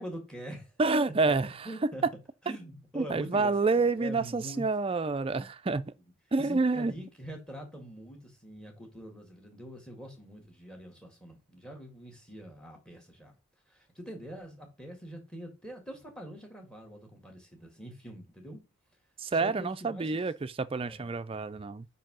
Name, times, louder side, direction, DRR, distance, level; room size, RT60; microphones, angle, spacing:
voice 1, 0.0-0.7 1.3-1.4 1.6-2.1 2.4-4.6 6.4-13.3 13.7-18.6 19.3-20.3 20.9-21.4, equal, 5° left, 1.8 m, -44 dB
voice 2, 0.8-1.5 1.8-1.9 2.9-5.9 6.3-6.9 19.2-21.9, right 3 dB, 25° right, 0.3 m, -28 dB
5.4 x 4.7 x 6.0 m
head